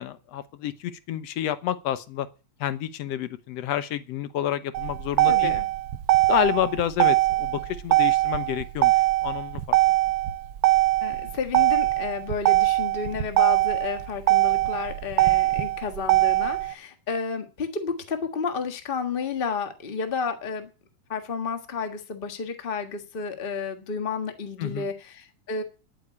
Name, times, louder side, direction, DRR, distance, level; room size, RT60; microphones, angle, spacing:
voice 1, 0.0-2.3 2.6-5.5 6.3-9.8 24.6-24.9, left 11 dB, 70° left, 1.9 m, -29 dB
Motor vehicle (road), 4.7-16.7, right 17 dB, 80° right, 1.1 m, -22 dB
voice 2, 5.3-5.6 11.0-20.7 21.1-25.6, left 5 dB, 30° left, 1.2 m, -31 dB
10.5 x 8.4 x 8.5 m
omnidirectional pair, 3.3 m